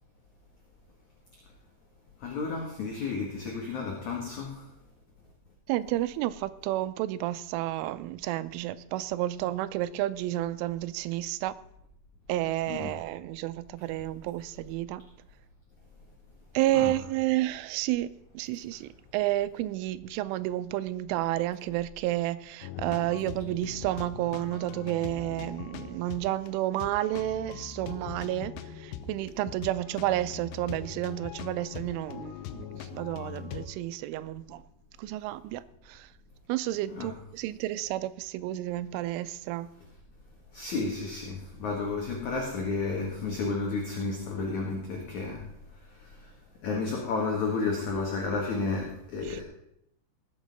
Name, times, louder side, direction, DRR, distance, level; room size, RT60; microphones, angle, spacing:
voice 1, 2.2-4.7 12.7-12.9 16.7-16.9 36.9-37.1 40.5-45.4 45.9-46.3 46.6-49.4, left 4 dB, 55° left, 2.4 m, -32 dB
voice 2, 5.7-11.6 12.3-15.1 16.5-34.6 35.0-36.1 36.5-39.7 49.2-49.4, right 15 dB, 90° right, 3.1 m, -31 dB
sound 1, 22.6-33.7, left 8 dB, 75° left, 2.6 m, -41 dB
19.5 x 8.0 x 5.3 m
omnidirectional pair, 5.5 m